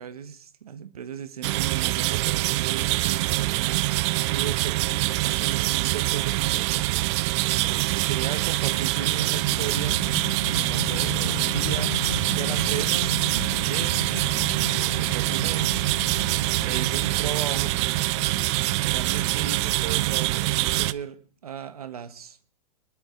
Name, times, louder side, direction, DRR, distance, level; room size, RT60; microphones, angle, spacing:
voice 1, 0.0-6.8 7.6-10.0 10.5-12.0 12.4-13.1 13.4-14.0 14.6-15.8 16.5-17.8 18.4-21.2 21.4-22.4, right 8 dB, 80° right, 14 dB, 1.3 m, -36 dB
sound 1, 1.4-20.9, right 19 dB, 50° right, 0.6 m, -25 dB
sound 2, 8.7-20.9, left 9 dB, 85° left, 0.7 m, -37 dB
24.0 x 12.0 x 3.8 m, 0.43 s
hypercardioid pair, 110°, 19 cm